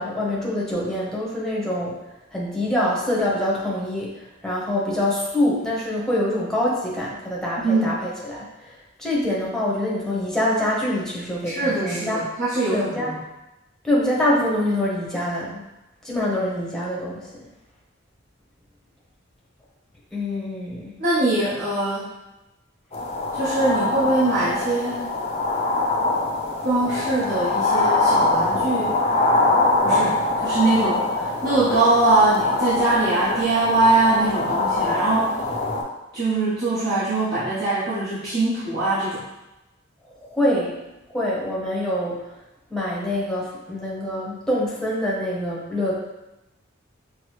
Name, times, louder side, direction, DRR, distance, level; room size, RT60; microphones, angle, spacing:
voice 1, 0.0-2.0 2.3-8.7 9.0-12.3 12.7-13.1 13.8-15.6 16.0-17.5 20.1-21.0 40.2-40.8 41.1-42.3 42.7-45.9, left 1 dB, 5° left, -5 dB, 0.9 m, -25 dB
voice 2, 7.6-8.0 11.4-13.2 21.0-22.1 23.3-25.1 26.6-29.0 29.8-35.5 36.1-39.2, right 2 dB, 50° right, -11 dB, 1.0 m, -22 dB
sound 1, 22.9-35.8, left 2 dB, 30° left, 0.5 m, -23 dB
6.0 x 2.1 x 3.0 m, 0.98 s
head